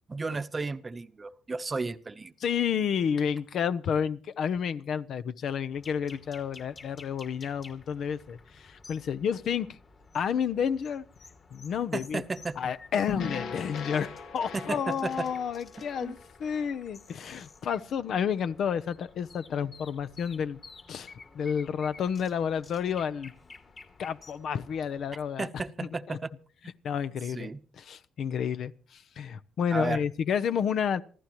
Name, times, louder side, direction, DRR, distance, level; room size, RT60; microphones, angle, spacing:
voice 1, 0.1-2.3 11.9-12.6 13.0-13.3 14.5-15.3 16.0-16.2 25.4-26.3 27.3-27.6 29.7-30.0, right 3 dB, 30° right, 0.8 m, -33 dB
voice 2, 2.4-9.8 10.1-11.0 11.5-12.2 12.6-20.6 20.9-23.3 24.0-25.5 26.1-26.2 26.8-27.5 27.8-31.0, left 7 dB, 65° left, 0.7 m, -30 dB
sound 1, 5.7-25.3, left 4 dB, 40° left, 2.6 m, -53 dB
sound 2, 13.1-17.4, left 6 dB, 80° left, 1.9 m, -40 dB
26.0 x 15.0 x 3.0 m
cardioid pair, 90°, 0 cm